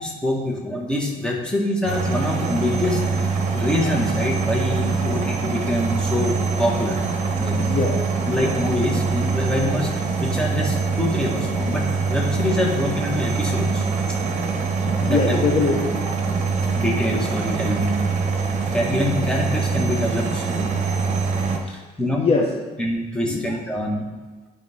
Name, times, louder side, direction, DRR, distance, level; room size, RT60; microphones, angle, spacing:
voice 1, 0.0-7.0 7.4-7.6 8.3-13.9 14.8-15.4 16.0-16.1 16.8-18.0 18.7-20.8 21.7-22.5 22.8-24.1, left 1 dB, 5° left, -2 dB, 1.8 m, -25 dB
sound 1, 1.8-21.6, right 4 dB, 45° right, 1.3 m, -24 dB
voice 2, 7.6-8.4 14.3-14.6 15.0-16.1 21.7-21.8 22.1-22.8 23.2-23.5, left 4 dB, 35° left, 0 dB, 0.9 m, -24 dB
12.0 x 5.2 x 3.7 m, 1.2 s
cardioid pair, 110°, 17 cm